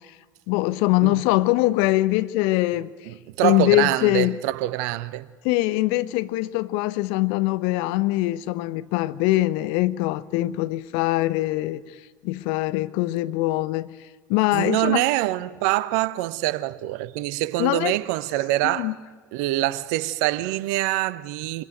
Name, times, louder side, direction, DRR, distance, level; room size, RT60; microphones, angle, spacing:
voice 1, 0.5-2.9 3.4-4.4 5.4-11.8 12.2-13.9 14.3-15.0 17.6-17.9 18.6-18.9, left 18 dB, 60° left, 1.0 m, -22 dB
voice 2, 3.0-5.3 14.5-18.9 19.3-21.6, right 16 dB, 65° right, 1.0 m, -25 dB
26.5 x 20.5 x 9.2 m
figure-of-eight pair, 65°, 10 cm